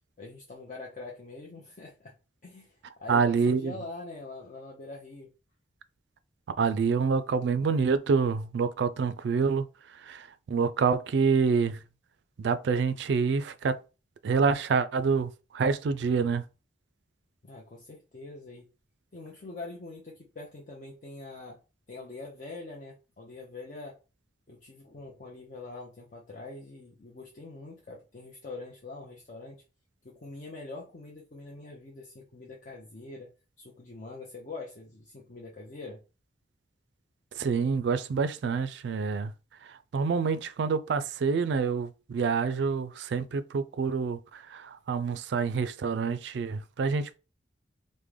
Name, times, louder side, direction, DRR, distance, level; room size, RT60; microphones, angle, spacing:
voice 1, 0.2-2.1 2.4-5.3 17.4-18.7 19.1-21.6 21.9-24.0 24.5-29.6 30.0-33.3 33.6-36.0, left 3 dB, 45° left, 0.5 m, -44 dB
voice 2, 3.1-3.7 6.6-9.7 10.0-11.8 12.4-13.8 14.2-16.4 37.4-39.3 39.9-47.2, right 5 dB, 70° right, 0.3 m, -27 dB
3.5 x 2.1 x 3.2 m
head